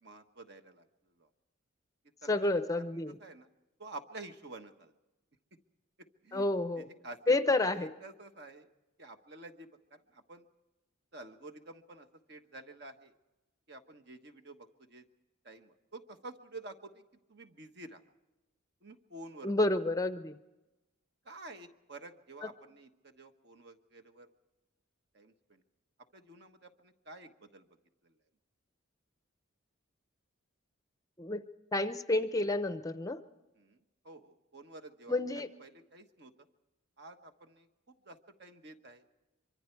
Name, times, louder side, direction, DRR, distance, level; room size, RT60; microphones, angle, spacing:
voice 1, 0.0-1.3 2.2-2.5 2.8-3.5 3.8-4.9 6.2-6.5 6.8-7.4 7.7-8.7 9.0-10.5 11.1-13.1 13.7-15.1 15.4-17.0 17.3-18.0 18.8-19.5 21.2-24.3 25.1-25.6 26.1-27.7 28.0-28.2 33.6-36.5 37.0-37.7 38.0-39.0, right 2 dB, 50° right, 6 dB, 1.3 m, -50 dB
voice 2, 2.3-3.2 6.3-6.9 7.3-7.9 19.4-20.4 31.2-31.4 31.7-33.2 35.1-35.5, left 2 dB, 15° left, 10 dB, 0.6 m, -30 dB
24.5 x 24.5 x 4.6 m, 1.0 s
head